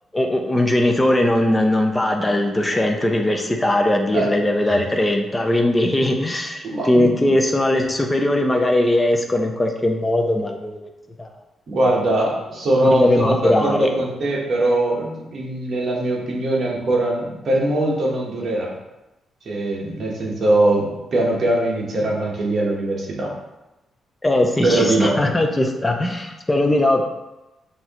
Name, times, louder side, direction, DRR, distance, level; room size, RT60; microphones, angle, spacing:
voice 1, 0.1-10.9 11.2-11.3 12.9-13.9 24.2-27.0, left 1 dB, 10° left, 3 dB, 0.4 m, -19 dB
voice 2, 6.6-7.1 11.7-18.7 19.4-23.3 24.6-25.3, right 1 dB, 40° right, -3 dB, 1.0 m, -21 dB
5.9 x 2.6 x 2.9 m, 0.99 s
cardioid pair, 165°, 0 cm